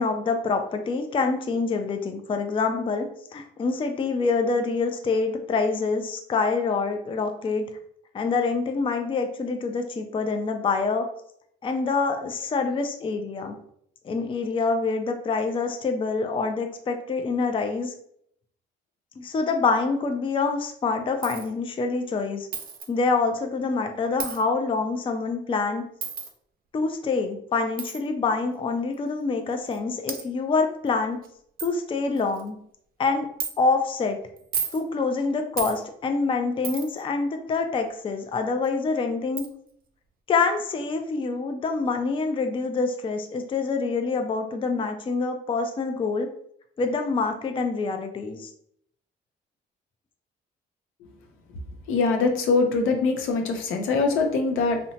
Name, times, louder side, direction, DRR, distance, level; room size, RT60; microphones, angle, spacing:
voice 1, 0.0-7.7 8.1-11.1 11.6-13.6 14.0-17.9 19.2-22.5 22.9-25.8 26.7-31.2 31.6-32.6 33.0-33.3 33.6-34.2 34.7-39.5 40.3-46.3 46.8-48.5, left 4 dB, 25° left, 6 dB, 0.3 m, -26 dB
Coin (dropping), 21.2-21.5 22.5-22.9 24.2-24.4 26.0-26.3 27.8-28.0 28.9-29.0 29.7-29.8 30.1-30.2 30.9-31.0 31.2-31.3 31.6-31.7 32.2-32.5 33.4-33.5 34.4-34.8 35.6-35.8 36.6-37.0 38.6-38.7 39.4-39.5, right 7 dB, 45° right, 0.4 m, -32 dB
voice 2, 51.9-54.8, left 4 dB, 85° left, 3 dB, 0.6 m, -23 dB
2.8 x 2.1 x 2.7 m, 0.68 s
cardioid pair, 90°, 20 cm